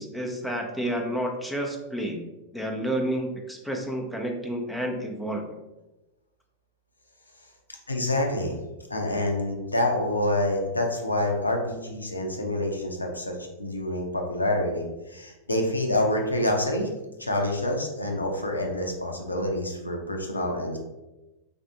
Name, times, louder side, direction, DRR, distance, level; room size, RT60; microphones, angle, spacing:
voice 1, 0.0-2.3 2.5-5.5, right 1 dB, ahead, 1 dB, 0.6 m, -30 dB
voice 2, 7.9-8.6 8.9-16.9 17.2-20.8, left 1 dB, 80° left, 2 dB, 0.6 m, -27 dB
3.4 x 2.5 x 4.0 m, 1.0 s
figure-of-eight pair, 90°, 0 cm